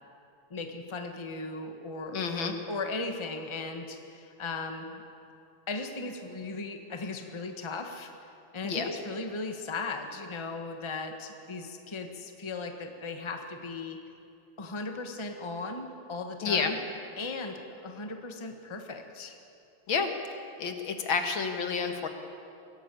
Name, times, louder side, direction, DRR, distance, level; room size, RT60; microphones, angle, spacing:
voice 1, 0.5-5.0 5.7-8.1 8.5-14.0 14.6-16.8 17.2-19.4, left 3 dB, 15° left, 5 dB, 1.3 m, -37 dB
voice 2, 2.1-2.5 8.6-8.9 16.4-16.7 19.9-20.1 20.6-22.1, left 5 dB, 70° left, 5 dB, 2.4 m, -29 dB
23.0 x 17.0 x 8.5 m, 2.6 s
omnidirectional pair, 2.3 m